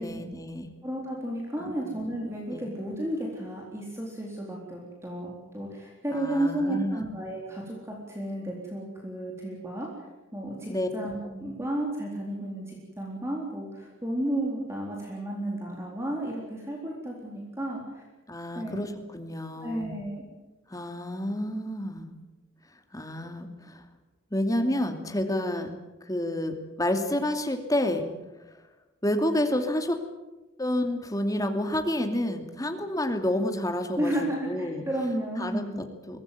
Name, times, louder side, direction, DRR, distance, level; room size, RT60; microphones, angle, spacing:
voice 1, 0.0-0.7 1.6-1.8 2.5-2.6 6.1-7.1 10.7-10.9 18.3-19.9 20.7-22.1 22.9-23.8 24.3-25.7 26.0-28.1 29.0-30.0 30.6-34.1 34.4-34.8 35.4-36.2, left 1 dB, 15° left, 5 dB, 2.5 m, -29 dB
voice 2, 0.8-18.0 18.6-18.9 19.6-20.2 34.0-35.6, right 1 dB, 15° right, -2 dB, 3.9 m, -33 dB
23.0 x 18.0 x 9.4 m, 1.1 s
head